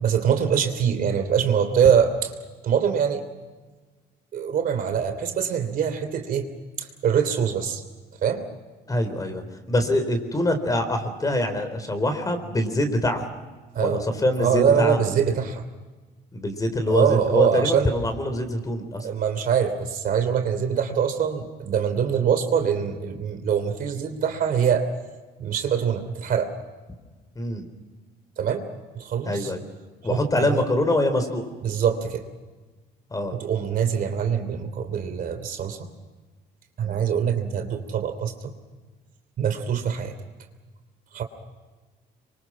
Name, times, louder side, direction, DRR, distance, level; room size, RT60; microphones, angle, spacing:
voice 1, 0.0-2.1 2.6-3.2 4.3-6.5 6.8-7.8 8.2-8.4 13.7-14.0 14.4-15.6 16.9-17.9 19.0-24.9 25.4-26.5 28.4-28.7 28.9-29.5 30.1-30.6 31.6-32.2 33.4-35.9 36.8-38.3 39.4-40.1 41.1-41.2, right 7 dB, 55° right, 7 dB, 3.0 m, -23 dB
voice 2, 8.9-13.3 13.8-15.0 16.3-19.1 27.4-27.7 29.2-29.6 30.0-31.5 33.1-33.4 36.8-37.0, left 1 dB, 20° left, 8 dB, 4.1 m, -24 dB
26.5 x 24.5 x 6.2 m, 1.3 s
cardioid pair, 110°, 17 cm